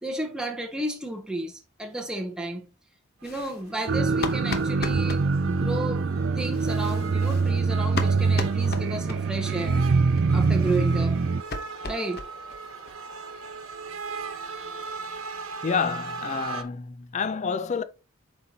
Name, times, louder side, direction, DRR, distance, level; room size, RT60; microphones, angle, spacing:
voice 1, 0.0-2.7 3.2-6.0 6.4-9.8 10.3-11.2 11.8-12.2, right 1 dB, 5° right, 0.8 m, -32 dB
sound 1, 3.2-5.3 6.4-9.5 9.8-9.9 10.2-10.3 10.6-12.6 12.9-13.0 13.3-13.4 13.7-13.8 14.1-14.9, left 3 dB, 50° left, 0.9 m, -37 dB
sound 2, 3.2-16.6, right 5 dB, 90° right, 1.2 m, -39 dB
sound 3, 3.9-11.4, right 4 dB, 55° right, 0.4 m, -24 dB
voice 2, 15.6-17.8, left 5 dB, 35° left, 0.4 m, -28 dB
7.6 x 4.6 x 2.8 m
head